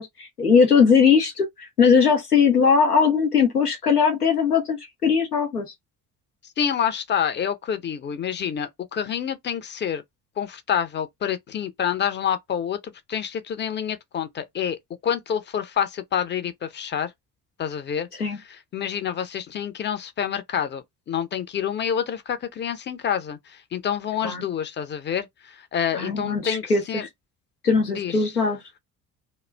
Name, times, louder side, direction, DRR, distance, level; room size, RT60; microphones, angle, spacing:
voice 1, 0.0-5.7 18.2-18.4 24.2-24.4 25.9-27.1 27.6-28.6, left 6 dB, 90° left, 0.7 m, -20 dB
voice 2, 6.6-10.0 10.4-17.1 17.6-18.1 18.5-27.1 27.9-28.3, left 8 dB, 25° left, 0.6 m, -28 dB
2.3 x 2.1 x 3.3 m
figure-of-eight pair, 50°, 45 cm